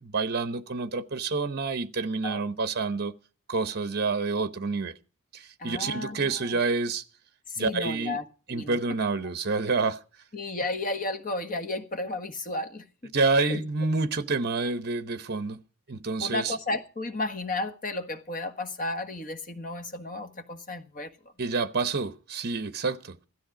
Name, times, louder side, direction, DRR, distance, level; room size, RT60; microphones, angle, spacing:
voice 1, 0.0-3.1 3.5-4.9 5.3-7.0 7.6-8.2 8.5-10.0 13.1-15.6 15.9-16.6 21.4-23.2, right 4 dB, 45° right, 0.9 m, -28 dB
voice 2, 5.6-6.6 7.5-8.8 10.3-13.1 13.5-13.6 16.2-21.1, left 2 dB, 40° left, 1.5 m, -33 dB
16.0 x 13.5 x 5.0 m
head